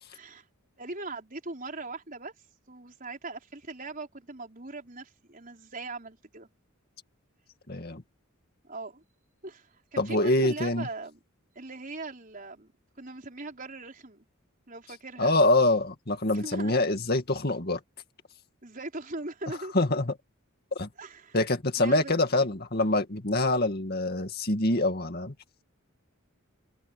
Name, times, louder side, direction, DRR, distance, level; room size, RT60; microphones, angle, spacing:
voice 1, 0.1-0.4 0.8-2.3 2.7-6.5 8.6-9.0 9.4-11.2 11.5-14.2 14.7-15.4 16.3-16.7 18.6-19.7 21.0-21.4 21.8-22.4, right 2 dB, 40° right, 5.0 m, -40 dB
voice 2, 7.7-8.0 10.0-10.9 15.2-17.8 19.7-20.1 20.8-20.9 21.3-25.3, left 2 dB, 45° left, 2.2 m, -25 dB
head